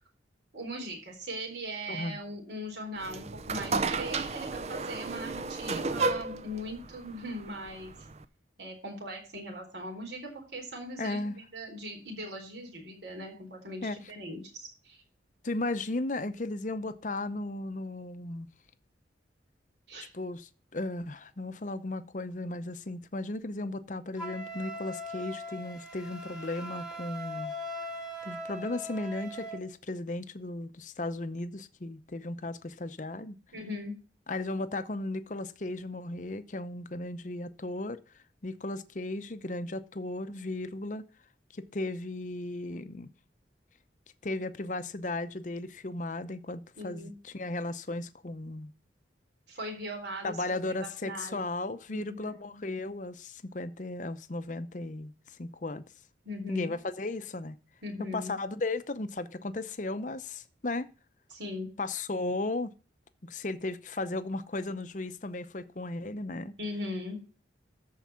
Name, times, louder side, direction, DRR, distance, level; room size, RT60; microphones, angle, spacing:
voice 1, 0.5-7.9 8.6-15.0 19.9-20.1 33.5-34.0 46.8-47.1 49.5-51.4 51.9-52.4 56.2-56.8 57.8-58.4 61.3-61.7 66.6-67.2, equal, 65° right, 3.9 m, -39 dB
voice 2, 1.9-2.2 5.7-5.8 11.0-11.4 13.8-14.0 15.4-18.5 20.1-27.5 28.2-33.4 34.3-38.0 38.4-41.0 41.5-43.1 44.2-48.7 50.2-55.8 56.5-57.6 58.1-60.9 61.8-62.7 63.2-66.5, left 2 dB, 40° left, 0.7 m, -35 dB
sound 1, 3.0-8.3, right 3 dB, 35° right, 0.5 m, -33 dB
Wind instrument woodwind instrument, 24.2-29.6, left 1 dB, 5° right, 1.8 m, -40 dB
13.5 x 4.7 x 5.6 m
head